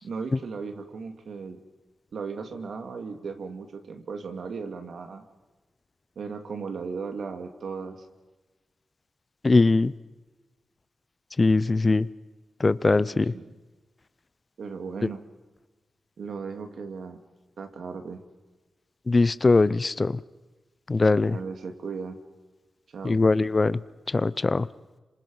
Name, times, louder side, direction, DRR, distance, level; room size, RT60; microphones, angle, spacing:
voice 1, 0.0-1.6 2.1-5.2 6.2-8.1 13.3-13.5 14.6-15.2 16.2-17.2 17.6-18.2 21.3-22.2 22.9-23.2, right 5 dB, 75° right, 2.6 m, -36 dB
voice 2, 9.4-9.9 11.4-12.1 12.6-13.3 19.1-20.2 20.9-21.4 23.0-23.8 24.1-24.7, left 3 dB, 35° left, 0.7 m, -21 dB
27.0 x 26.5 x 5.6 m
cardioid pair, 80°, 0 cm